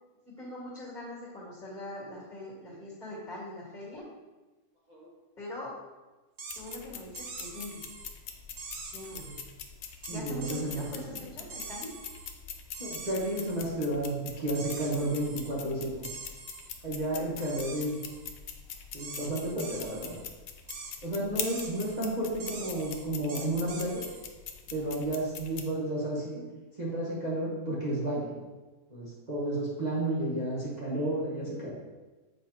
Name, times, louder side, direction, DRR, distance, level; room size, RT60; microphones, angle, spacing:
voice 1, 0.4-4.1 5.4-5.7 6.6-7.9 8.9-9.4 10.1-11.9, left 1 dB, 30° left, -6 dB, 2.2 m, -42 dB
sound 1, 6.4-6.8 7.1-8.1 8.6-9.4 10.0-11.0 11.5-12.3 12.7-13.7 14.5-15.5 16.0-16.7 17.4-18.3 19.0-20.2 20.7-20.9 21.4-22.0 22.4-24.2, right 4 dB, 60° right, 1.0 m, -44 dB
sound 2, 6.5-25.6, left 7 dB, 75° left, 1.1 m, -43 dB
voice 2, 10.1-10.8 11.1-11.2 12.8-16.1 16.8-17.9 18.9-20.1 21.0-24.0 24.7-26.4 26.8-28.3 28.9-31.7, right 1 dB, 30° right, -7 dB, 1.2 m, -32 dB
8.1 x 5.1 x 3.0 m, 1.2 s
omnidirectional pair, 1.6 m